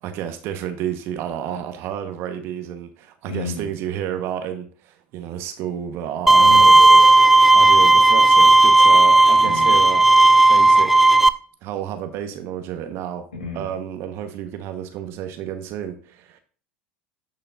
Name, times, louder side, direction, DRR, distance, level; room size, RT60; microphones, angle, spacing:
voice 1, 0.0-7.3 7.5-10.0 10.5-11.2 11.6-13.2 13.5-16.4, right 10 dB, 50° right, 1.2 m, -31 dB
voice 2, 3.2-3.7 6.4-6.8 9.4-9.7 13.4-13.7, left 1 dB, 75° left, 3.3 m, -31 dB
Bowed string instrument, 6.3-11.3, right 2 dB, 5° right, 0.5 m, -12 dB
11.0 x 5.6 x 2.6 m
figure-of-eight pair, 75°, 5 cm